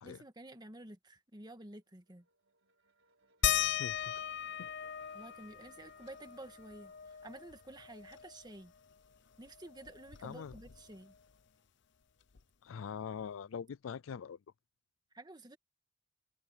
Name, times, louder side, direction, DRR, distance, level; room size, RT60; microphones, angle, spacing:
voice 1, 0.0-2.2 5.1-8.7 9.4-11.1 15.1-15.6, right 1 dB, 20° right, 1.6 m, -51 dB
sound 1, 1.7-9.3, right 2 dB, 80° right, 3.8 m, -69 dB
sound 2, 3.4-8.6 8.9-9.0 9.3-11.1 12.4-12.5 13.2-13.3, left 10 dB, 65° left, 0.7 m, -38 dB
voice 2, 3.8-4.2 4.6-4.7 10.2-10.5 12.6-14.4, left 6 dB, 90° left, 0.4 m, -43 dB
head